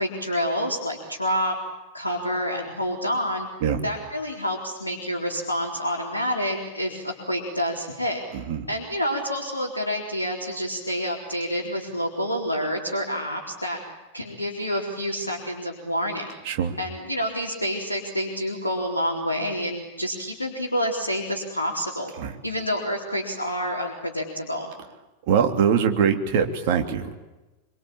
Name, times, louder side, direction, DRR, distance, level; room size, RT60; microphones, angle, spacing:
voice 1, 0.0-1.5 1.9-3.5 3.8-8.2 8.7-13.8 14.1-16.3 16.8-22.1 22.4-24.7, equal, 85° left, -1 dB, 4.0 m, -28 dB
voice 2, 8.3-8.7 16.4-16.8 22.2-22.3 25.3-27.1, right 7 dB, 50° right, 5 dB, 3.2 m, -22 dB
26.0 x 25.0 x 8.8 m, 1.1 s
figure-of-eight pair, 90°, 0 cm